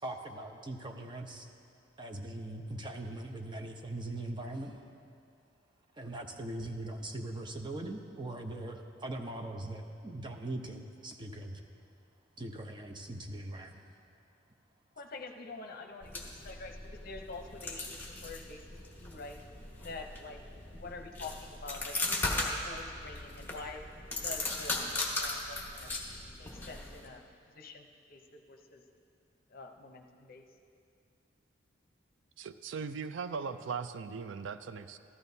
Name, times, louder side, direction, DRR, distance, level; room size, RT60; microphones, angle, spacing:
voice 1, 0.0-1.5 2.0-4.8 6.0-11.6 12.4-13.9, right 1 dB, 25° right, 3 dB, 0.6 m, -41 dB
voice 2, 15.0-19.4 19.8-23.9 24.2-25.9 26.4-27.3 27.5-28.8 29.5-30.4, left 3 dB, 50° left, 4 dB, 0.7 m, -47 dB
sound 1, 16.0-27.1, left 2 dB, 10° left, 1.2 m, -38 dB
voice 3, 32.4-35.0, right 5 dB, 75° right, 11 dB, 0.4 m, -39 dB
14.0 x 12.5 x 2.7 m, 2.4 s
head